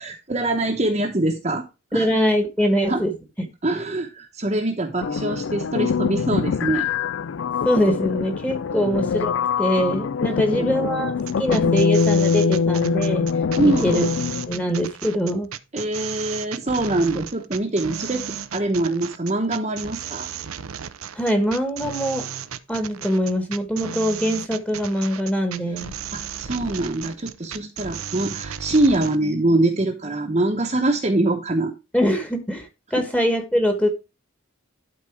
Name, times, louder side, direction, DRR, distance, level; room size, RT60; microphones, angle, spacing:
voice 1, 0.0-1.6 1.9-2.1 2.9-3.0 3.6-6.9 8.7-8.8 10.3-10.8 11.6-11.8 13.6-14.1 15.7-20.3 26.1-31.7, right 2 dB, 30° right, 0 dB, 1.0 m, -24 dB
voice 2, 1.9-3.5 7.6-13.3 13.6-14.1 14.5-15.5 21.1-22.3 22.7-25.9 31.9-33.9, equal, 5° left, 5 dB, 1.3 m, -23 dB
sound 1, 5.0-14.5, left 6 dB, 60° left, 0.4 m, -23 dB
sound 2, 11.2-29.2, right 8 dB, 85° right, 0.7 m, -34 dB
12.0 x 4.1 x 4.6 m, 0.28 s
head